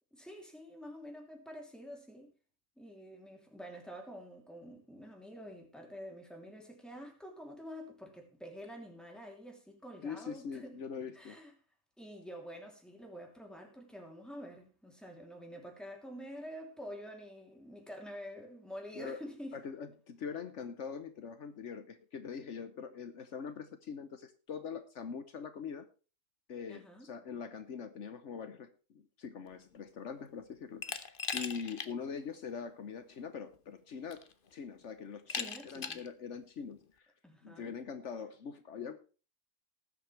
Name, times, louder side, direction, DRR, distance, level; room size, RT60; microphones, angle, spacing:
voice 1, 0.1-2.3 2.8-10.8 11.1-11.5 12.0-19.6 26.7-27.1 35.3-36.0 37.2-37.8, equal, ahead, 3.0 m, -48 dB
voice 2, 10.0-11.4 18.9-19.2 19.5-25.9 26.5-34.3 34.5-37.1 37.4-39.0, left 6 dB, 70° left, 1.2 m, -43 dB
Glass, 30.8-31.9 32.3-32.4 33.5-33.6 34.1-34.5 35.3-36.1, left 5 dB, 45° left, 1.1 m, -39 dB
19.0 x 7.8 x 3.3 m
omnidirectional pair, 1.3 m